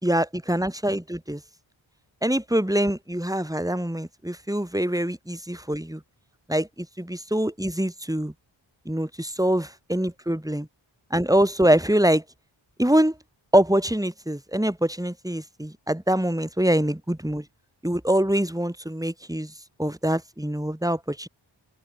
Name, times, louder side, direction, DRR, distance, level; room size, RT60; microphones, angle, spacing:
voice 1, 0.0-1.4 2.2-6.0 6.5-8.3 8.9-10.7 11.1-12.2 12.8-13.2 13.5-17.5 17.8-19.5 19.8-21.3, right 1 dB, 5° right, 3.8 m, -24 dB
wide cardioid pair, 60°, 48 cm